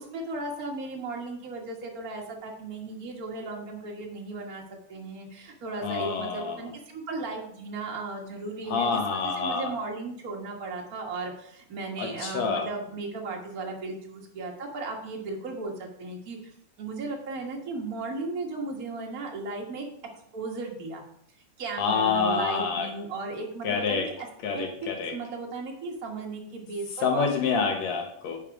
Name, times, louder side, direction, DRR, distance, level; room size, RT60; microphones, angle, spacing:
voice 1, 0.0-4.6 4.9-16.4 16.8-19.8 20.3-21.0 21.6-27.3, right 3 dB, 60° right, 0 dB, 0.9 m, -36 dB
voice 2, 5.8-6.6 8.7-9.7 12.0-12.7 21.8-22.9 23.6-24.1 24.4-25.1 27.0-28.4, left 5 dB, 65° left, 3 dB, 1.9 m, -27 dB
9.9 x 4.7 x 4.8 m, 0.70 s
omnidirectional pair, 3.8 m